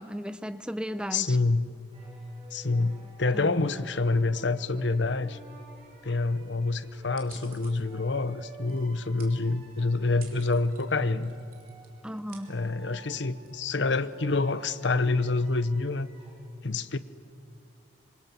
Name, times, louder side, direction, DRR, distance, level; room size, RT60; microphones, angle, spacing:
voice 1, 0.0-1.4 3.3-3.5 12.0-12.5, equal, 5° right, 12 dB, 0.6 m, -35 dB
voice 2, 1.1-1.7 2.5-5.4 6.0-11.3 12.5-16.1 16.6-17.0, left 3 dB, 70° left, 14 dB, 0.9 m, -27 dB
sound 1, 1.9-16.3, right 2 dB, 30° right, 6.4 m, -54 dB
sound 2, 7.2-14.8, right 6 dB, 50° right, 3.4 m, -56 dB
26.5 x 25.0 x 7.0 m, 2.2 s
head